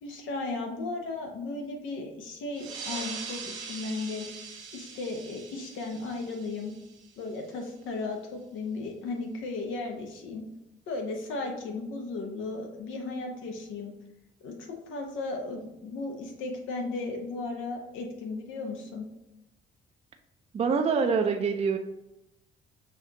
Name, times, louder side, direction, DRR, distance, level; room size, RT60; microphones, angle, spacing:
voice 1, 0.0-4.3 4.7-6.7 7.2-10.5 10.9-13.9 14.4-19.1, left 3 dB, 90° left, 2 dB, 0.9 m, -35 dB
sound 1, 2.5-7.6, right 5 dB, 85° right, 0.9 m, -42 dB
voice 2, 20.5-21.8, right 5 dB, 30° right, 5 dB, 0.4 m, -25 dB
5.7 x 2.4 x 2.8 m, 0.94 s
cardioid pair, 90°, 20 cm